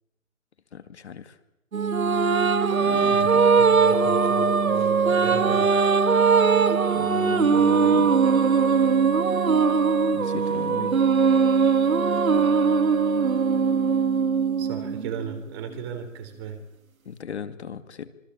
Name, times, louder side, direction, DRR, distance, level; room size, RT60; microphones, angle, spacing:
voice 1, 0.7-1.4 2.7-3.5 6.5-8.2 10.1-11.0 17.1-18.1, left 7 dB, 55° left, 11 dB, 2.3 m, -37 dB
sound 1, 1.7-15.3, right 5 dB, 90° right, 2.1 m, -20 dB
voice 2, 3.1-5.8 14.6-16.6, right 7 dB, 20° right, 6 dB, 3.6 m, -35 dB
26.5 x 25.5 x 8.5 m, 0.90 s
hypercardioid pair, 170°, 40 cm